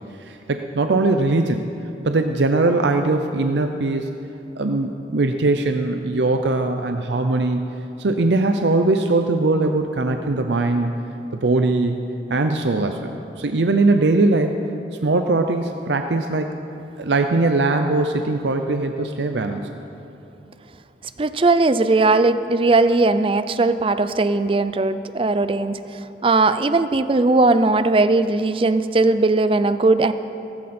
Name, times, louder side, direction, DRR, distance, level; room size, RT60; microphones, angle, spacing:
voice 1, 0.2-1.6 2.0-4.1 4.6-7.7 8.0-10.9 11.3-12.0 12.3-14.5 15.0-16.5 17.0-19.7, right 2 dB, 85° right, 6 dB, 0.6 m, -20 dB
voice 2, 21.2-30.1, right 3 dB, 30° right, 12 dB, 0.5 m, -18 dB
17.5 x 15.0 x 4.4 m, 2.9 s
head